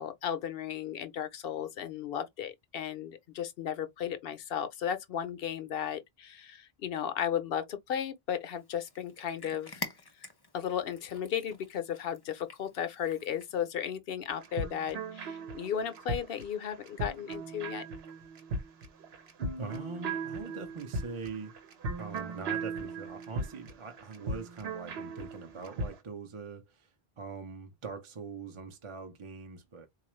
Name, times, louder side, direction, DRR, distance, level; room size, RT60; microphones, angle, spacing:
voice 1, 0.0-9.8 10.5-17.8, left 9 dB, 70° left, 0.8 m, -35 dB
Cat, 8.5-13.7, left 2 dB, 30° left, 0.6 m, -47 dB
sound 1, 14.3-26.0, right 3 dB, 80° right, 1.0 m, -38 dB
voice 2, 19.6-21.5 22.0-26.9 27.2-29.9, right 4 dB, 35° right, 0.6 m, -42 dB
4.0 x 2.4 x 3.0 m
omnidirectional pair, 1.0 m